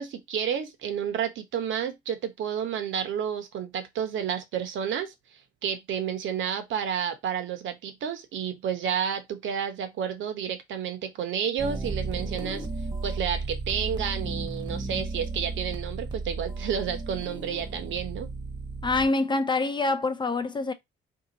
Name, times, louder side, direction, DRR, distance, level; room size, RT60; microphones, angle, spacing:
voice 1, 0.0-5.1 5.6-12.7 13.0-18.3, right 8 dB, 75° right, 0.9 m, -30 dB
sound 1, 11.6-19.1, right 3 dB, 20° right, 0.9 m, -34 dB
voice 2, 18.8-20.7, left 3 dB, 25° left, 0.5 m, -25 dB
2.8 x 2.4 x 3.9 m
cardioid pair, 90°, 20 cm